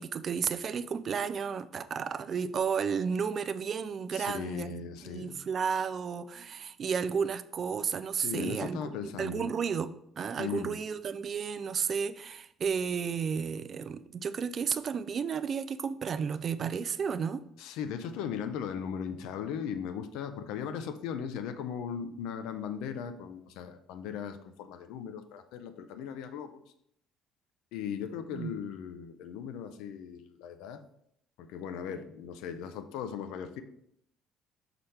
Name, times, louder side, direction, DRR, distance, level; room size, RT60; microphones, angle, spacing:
voice 1, 0.0-4.7 5.1-8.8 9.2-17.5 28.3-28.5, right 6 dB, 35° right, 0.3 m, -32 dB
voice 2, 4.1-5.4 8.1-9.5 10.4-10.8 17.6-26.6 27.7-30.8 31.4-33.6, left 7 dB, 90° left, 0.5 m, -38 dB
5.9 x 5.6 x 3.3 m
cardioid pair, 165°, 0 cm